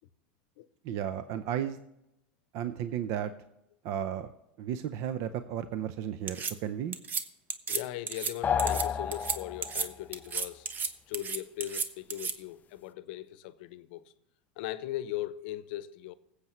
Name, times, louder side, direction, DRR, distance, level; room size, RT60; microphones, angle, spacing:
voice 1, 0.8-1.8 2.5-3.3 3.8-4.3 4.6-7.0, right 9 dB, 60° right, 0.6 m, -34 dB
sound 1, 6.3-6.5 6.9-7.2 7.5-7.8 8.1-8.3 8.6-8.8 9.1-9.4 9.6-9.9 10.1-10.9 11.1-12.3, right 5 dB, 30° right, 0.9 m, -32 dB
voice 2, 7.7-10.7 11.1-14.0 14.6-16.1, left 14 dB, 70° left, 0.7 m, -39 dB
sound 2, 8.4-9.9, left 8 dB, 30° left, 0.4 m, -30 dB
19.5 x 8.0 x 3.1 m
hypercardioid pair, 95°, 6 cm